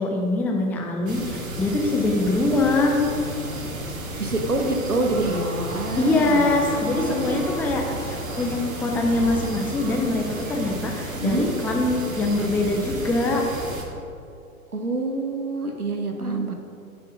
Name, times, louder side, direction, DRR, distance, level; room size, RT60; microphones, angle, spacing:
voice 1, 0.0-3.1 6.0-13.4 16.2-16.4, left 2 dB, 5° left, 0 dB, 0.5 m, -23 dB
sound 1, 1.1-13.8, right 1 dB, 65° right, 2.0 m, -32 dB
voice 2, 4.2-6.5 7.1-7.4 11.1-11.5 14.7-16.5, right 2 dB, 85° right, 4 dB, 1.3 m, -26 dB
12.0 x 5.9 x 4.9 m, 2.6 s
figure-of-eight pair, 100°, 43 cm